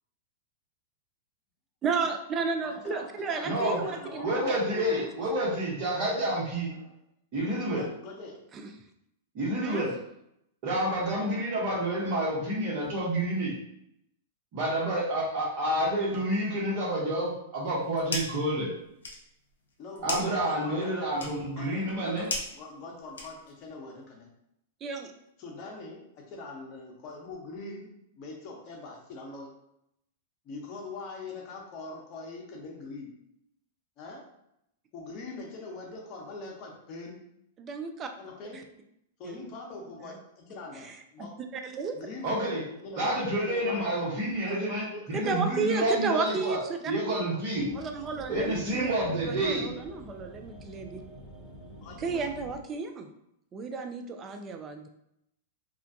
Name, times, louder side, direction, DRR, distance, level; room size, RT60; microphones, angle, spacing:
voice 1, 1.8-5.1 8.5-8.7 9.6-9.9 24.8-25.1 37.6-38.1 39.2-39.3 40.8-41.0 41.5-42.0 45.1-46.8 47.1-47.2 47.7-49.0 49.2-51.0 52.0-53.1 53.5-54.9, right 5 dB, 30° right, 6 dB, 0.4 m, -33 dB
voice 2, 2.6-4.3 7.7-8.4 19.8-22.3 22.5-24.3 25.4-27.9 28.2-29.5 30.4-33.1 34.0-34.2 34.9-37.2 38.2-38.6 39.2-41.3 41.9-44.0 44.4-45.2 51.8-52.3, left 3 dB, 40° left, 0 dB, 0.8 m, -43 dB
voice 3, 3.5-3.8 4.2-6.8 7.3-7.8 9.3-9.9 10.6-13.5 14.5-18.7 20.0-22.3 42.2-42.6 43.0-46.6 46.9-47.8 48.3-49.7, right 1 dB, 50° right, -4 dB, 1.1 m, -29 dB
sound 1, 17.6-18.5 18.8-23.7, left 3 dB, 85° left, 0.6 m, -38 dB
sound 2, 47.5-52.6, equal, 10° left, 0.6 m, -47 dB
2.4 x 2.2 x 2.6 m, 0.79 s
hypercardioid pair, 110°, 0 cm